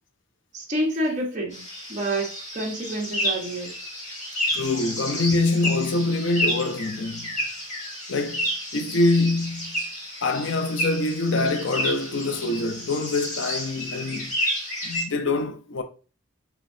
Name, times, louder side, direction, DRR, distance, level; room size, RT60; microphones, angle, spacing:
voice 1, 0.5-1.6 1.9-3.8, right 1 dB, 35° right, 1.0 m, -28 dB
sound 1, 1.5-15.0, equal, 35° left, 1.2 m, -31 dB
voice 2, 4.5-7.3 8.1-9.8 10.2-14.3 14.8-15.8, left 2 dB, 70° left, 0.6 m, -25 dB
4.9 x 3.1 x 2.6 m
head